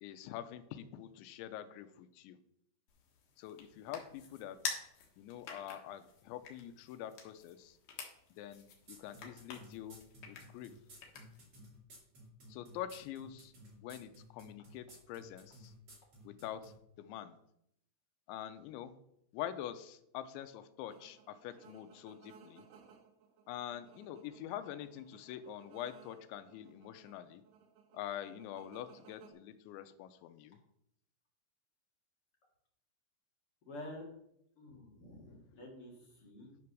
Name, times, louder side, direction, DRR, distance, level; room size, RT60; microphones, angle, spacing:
voice 1, 0.0-2.4 3.4-4.6 5.2-7.8 8.4-10.0 10.3-10.8 12.5-13.5 13.8-15.7 16.2-17.4 18.3-18.9 19.3-22.6 23.5-27.4 27.9-30.6, left 11 dB, 90° left, 11 dB, 3.1 m, -45 dB
sound 1, 2.9-11.6, left 5 dB, 60° left, 2.6 m, -48 dB
sound 2, 8.9-16.7, right 1 dB, 35° right, 2.9 m, -55 dB
sound 3, 20.9-29.3, right 7 dB, 75° right, 3.6 m, -61 dB
voice 2, 33.7-34.1 34.6-36.6, left 1 dB, 40° left, -2 dB, 2.2 m, -49 dB
10.0 x 6.0 x 6.1 m, 0.74 s
omnidirectional pair, 5.2 m